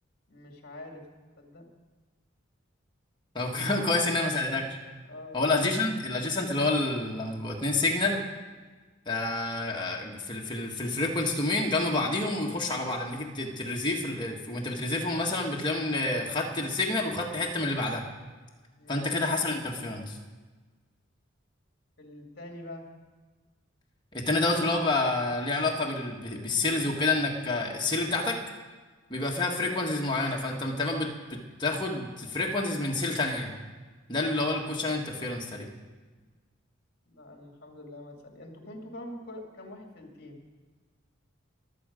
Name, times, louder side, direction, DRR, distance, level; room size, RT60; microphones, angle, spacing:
voice 1, 0.3-1.0 1.4-1.7 3.5-3.7 5.1-5.5 8.6-8.7 18.8-19.1 22.0-22.8 37.1-40.4, left 1 dB, 50° left, 2 dB, 2.3 m, -45 dB
voice 2, 3.3-4.8 5.3-8.2 9.0-18.0 18.9-20.2 24.1-28.4 29.1-33.5 34.1-35.7, left 2 dB, 20° left, -1 dB, 1.5 m, -28 dB
22.5 x 8.0 x 5.1 m, 1.4 s
head